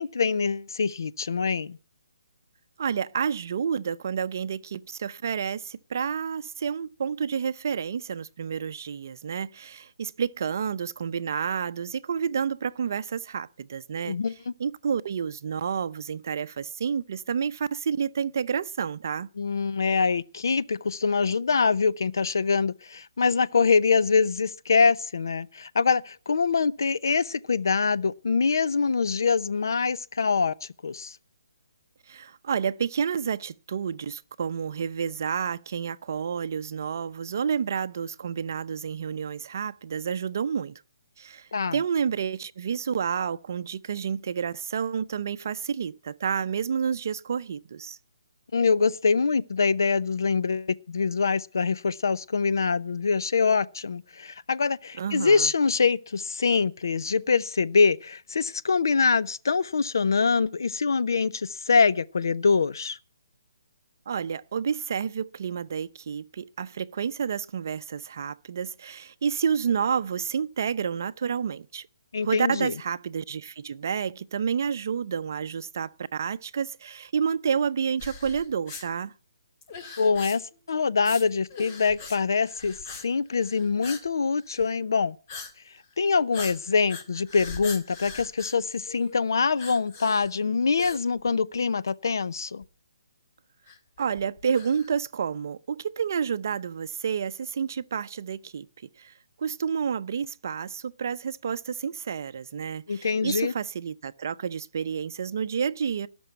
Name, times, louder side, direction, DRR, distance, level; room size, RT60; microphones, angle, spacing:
voice 1, 0.0-1.8 14.0-14.3 19.4-31.2 41.5-41.8 48.5-63.0 72.1-72.7 80.0-80.4 80.7-82.8 83.0-85.2 86.0-92.6 102.9-103.5, left 5 dB, 70° left, 0.7 m, -24 dB
voice 2, 2.8-14.2 14.6-19.3 32.1-40.8 41.2-48.0 55.0-55.5 64.1-71.9 72.2-79.1 94.0-98.7 99.0-106.1, right 7 dB, 50° right, 0.6 m, -30 dB
sound 1, 78.0-78.8 79.6-80.6 81.0-81.2 81.5-82.2 82.4-83.0 83.3-84.1 84.4-84.7 85.3-85.5 85.8-85.9 86.3-89.2 89.6-90.4 90.8-91.6 91.9-92.0 92.6-92.7 93.7-95.0, left 4 dB, 30° left, 2.0 m, -41 dB
18.0 x 6.2 x 8.0 m
hypercardioid pair, 160°, 2 cm